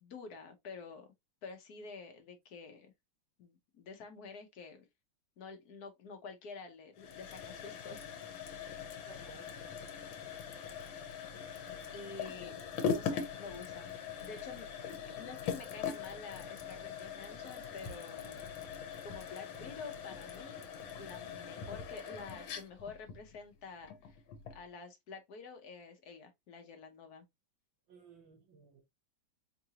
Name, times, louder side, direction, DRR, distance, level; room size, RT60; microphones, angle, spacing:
voice 1, 0.0-1.1 1.4-2.9 3.4-4.9 5.4-8.0 11.9-12.6 12.9-18.5 19.0-20.6 21.0-24.2 24.5-27.3, left 4 dB, 60° left, 1.3 m, -49 dB
sound 1, 7.0-24.7, left 7 dB, 80° left, 1.6 m, -42 dB
voice 2, 9.0-9.5 12.2-12.7 15.1-15.2 27.9-28.8, right 4 dB, 85° right, 1.8 m, -58 dB
4.6 x 2.6 x 2.8 m
omnidirectional pair, 2.1 m